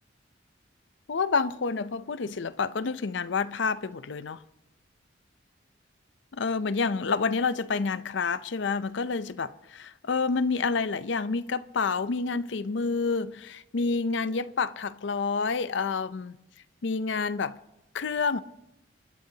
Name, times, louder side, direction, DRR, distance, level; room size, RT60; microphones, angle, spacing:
voice 1, 1.1-4.4 6.3-16.4 16.8-17.6 17.9-18.4, left 4 dB, 65° left, 0.5 m, -28 dB
26.0 x 11.5 x 2.8 m
head